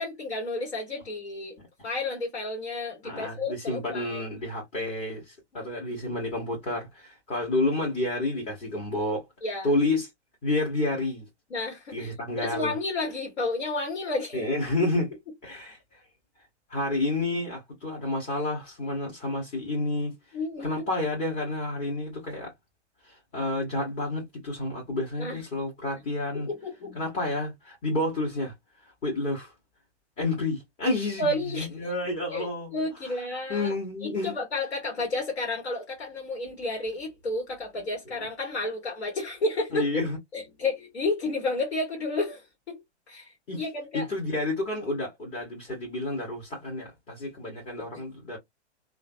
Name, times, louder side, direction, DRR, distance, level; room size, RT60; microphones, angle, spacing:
voice 1, 0.0-1.6 1.8-4.2 5.5-5.7 9.4-9.7 11.5-14.5 20.3-20.9 25.2-25.4 26.3-27.0 31.2-31.7 32.3-33.7 34.0-39.9 40.3-44.1 47.8-48.0, left 2 dB, 65° left, 1.5 m, -31 dB
voice 2, 3.0-9.3 9.6-10.1 10.4-11.3 11.9-12.7 14.3-15.1 15.4-16.0 16.7-22.5 23.0-26.5 26.9-28.5 28.8-29.5 30.2-31.3 31.5-32.8 33.0-33.1 33.5-34.3 39.7-40.2 43.5-43.7 43.9-48.4, left 2 dB, 20° left, 1.2 m, -30 dB
3.1 x 2.4 x 2.5 m
figure-of-eight pair, 115°, 35 cm